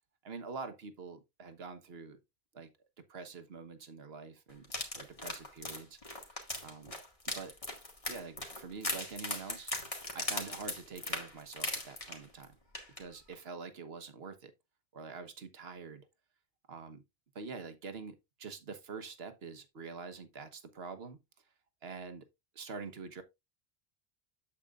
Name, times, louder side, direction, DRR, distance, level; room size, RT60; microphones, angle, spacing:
voice 1, 0.2-2.2 2.5-2.7 3.0-4.7 4.9-6.0 6.6-6.9 7.3-7.5 8.1-9.7 10.1-12.6 13.0-14.5 14.9-16.1 16.7-17.0 17.3-21.2 21.8-22.3 22.5-23.2, right 4 dB, 70° right, 1.4 m, -45 dB
sound 1, 4.6-12.4 12.7-13.0 13.3-13.4, left 2 dB, 30° left, 2.1 m, -39 dB
8.6 x 8.2 x 2.4 m
omnidirectional pair, 1.1 m